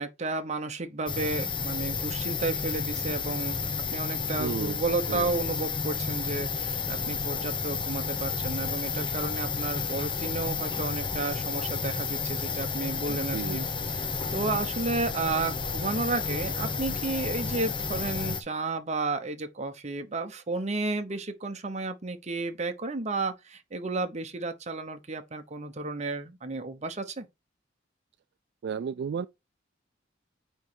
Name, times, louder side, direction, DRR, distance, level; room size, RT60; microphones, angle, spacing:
voice 1, 0.0-3.6 3.9-13.7 14.3-27.3, right 3 dB, 35° right, 1.0 m, -32 dB
sound 1, 1.1-18.4, left 5 dB, 25° left, 0.9 m, -31 dB
voice 2, 4.4-4.8 5.1-5.4 13.1-13.6 28.6-29.3, right 6 dB, 60° right, 0.3 m, -33 dB
9.0 x 3.2 x 4.6 m
head